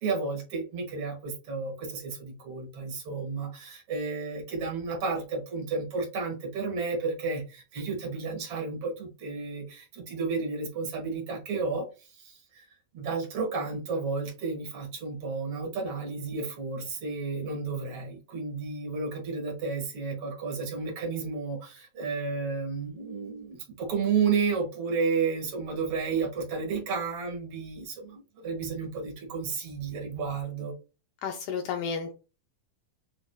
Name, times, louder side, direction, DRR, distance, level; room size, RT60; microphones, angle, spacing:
voice 1, 0.0-12.6 12.9-30.7, right 4 dB, 55° right, 1.8 m, -32 dB
voice 2, 31.2-32.1, left 6 dB, 80° left, 2.0 m, -32 dB
8.0 x 2.8 x 2.2 m
omnidirectional pair, 4.1 m